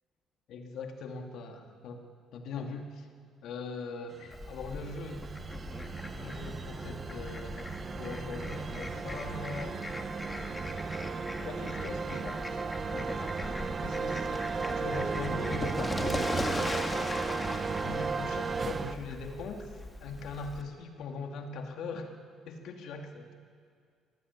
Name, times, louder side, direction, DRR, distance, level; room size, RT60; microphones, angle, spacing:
voice 1, 0.5-2.0 2.3-3.1 3.4-5.2 6.0-7.6 8.0-9.8 11.4-12.6 12.9-13.3 13.8-16.3 17.8-19.7 20.0-22.2 22.5-23.3, left 3 dB, 65° left, 4 dB, 2.6 m, -40 dB
sound 1, 4.2-18.9, right 5 dB, 30° right, 1.0 m, -35 dB
Fowl, 4.3-20.6, left 2 dB, 15° left, 2.0 m, -40 dB
23.5 x 18.5 x 9.7 m, 2.1 s
cardioid pair, 140°, 0 cm